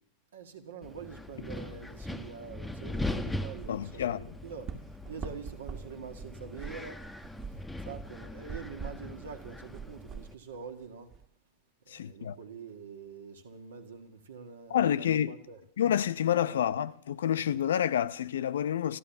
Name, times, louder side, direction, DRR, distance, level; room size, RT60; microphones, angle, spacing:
voice 1, 0.3-7.0 7.8-11.1 11.8-15.6 16.3-16.7, right 5 dB, 65° right, 1.7 m, -45 dB
Wind, 0.8-10.3, left 1 dB, 5° left, 0.9 m, -40 dB
sound 1, 2.8-11.2, right 5 dB, 35° right, 1.8 m, -45 dB
voice 2, 3.7-4.3 11.9-12.4 14.7-15.3 15.8-19.0, left 10 dB, 60° left, 0.5 m, -28 dB
14.0 x 12.0 x 7.3 m
figure-of-eight pair, 90°, 0 cm